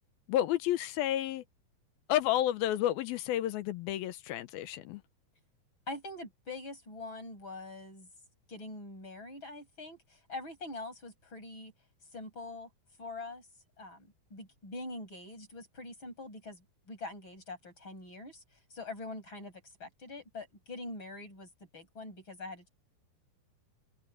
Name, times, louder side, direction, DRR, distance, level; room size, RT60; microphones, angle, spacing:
voice 1, 0.3-1.4 2.1-5.0, left 13 dB, 75° left, 2.5 m, -31 dB
voice 2, 5.9-8.1 8.5-11.7 12.1-12.7 13.0-13.5 13.8-18.4 18.7-22.7, left 2 dB, 25° left, 8.1 m, -44 dB
omnidirectional pair, 4.8 m